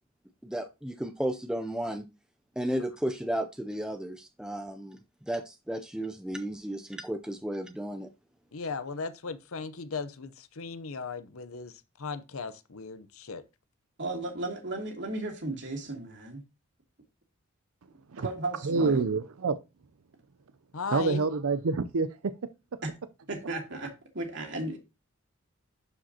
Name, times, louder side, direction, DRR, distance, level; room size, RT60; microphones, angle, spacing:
voice 1, 0.4-2.0 2.6-5.0 5.3-8.1, right 1 dB, 5° right, 0.4 m, -33 dB
voice 2, 8.5-11.7 12.0-13.4 20.7-21.2, left 4 dB, 75° left, 0.7 m, -37 dB
voice 3, 14.0-16.4 18.2-19.0 22.8-22.9 23.3-24.8, right 2 dB, 55° right, 2.5 m, -34 dB
voice 4, 18.6-19.6 20.9-22.8, right 4 dB, 75° right, 0.5 m, -28 dB
12.0 x 5.0 x 2.8 m
head